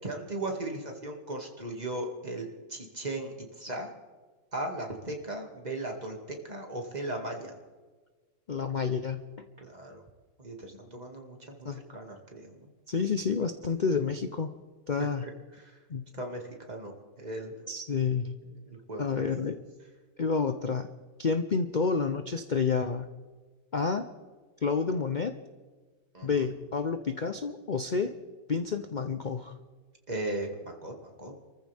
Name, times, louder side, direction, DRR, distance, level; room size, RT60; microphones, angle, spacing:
voice 1, 0.0-3.9 4.5-7.5 9.6-10.0 10.4-12.7 13.4-13.5 15.0-15.8 16.1-17.7 18.4-19.5 26.1-26.4 30.1-31.3, right 2 dB, 25° right, 1 dB, 2.3 m, -38 dB
voice 2, 8.5-9.3 11.6-11.8 12.9-14.5 14.9-15.2 15.9-16.0 17.7-18.4 19.0-19.5 20.2-20.9 21.2-23.1 23.7-24.1 24.6-25.3 26.2-28.2 28.5-29.5, left 5 dB, 75° left, 7 dB, 0.4 m, -29 dB
28.0 x 14.5 x 3.5 m, 1.4 s
omnidirectional pair, 1.9 m